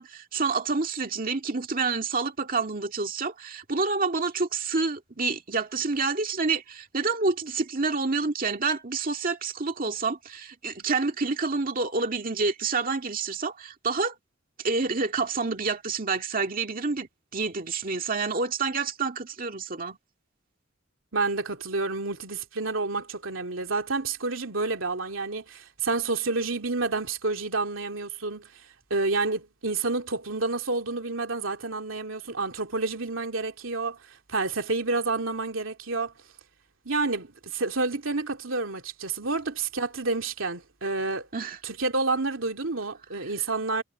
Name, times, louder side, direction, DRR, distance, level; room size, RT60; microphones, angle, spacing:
voice 1, 0.0-14.2 14.6-20.0 41.3-41.6, right 4 dB, 45° right, 2.1 m, -28 dB
voice 2, 21.1-28.5 28.9-34.0 34.3-36.1 36.8-41.3 41.6-43.8, right 3 dB, 85° right, 2.6 m, -29 dB
head